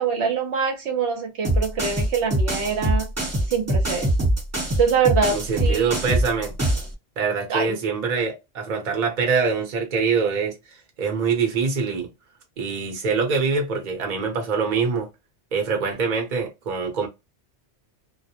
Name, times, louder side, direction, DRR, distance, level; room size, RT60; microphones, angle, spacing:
voice 1, 0.0-3.1 3.5-4.1 4.8-6.0 7.5-7.8, right 6 dB, 70° right, 0.9 m, -24 dB
sound 1, 1.4-6.9, right 1 dB, 15° right, 0.7 m, -23 dB
voice 2, 5.3-6.5 7.2-10.6 11.0-12.1 12.6-15.1 15.5-17.1, right 5 dB, 45° right, 0.8 m, -24 dB
2.3 x 2.1 x 2.7 m
omnidirectional pair, 1.2 m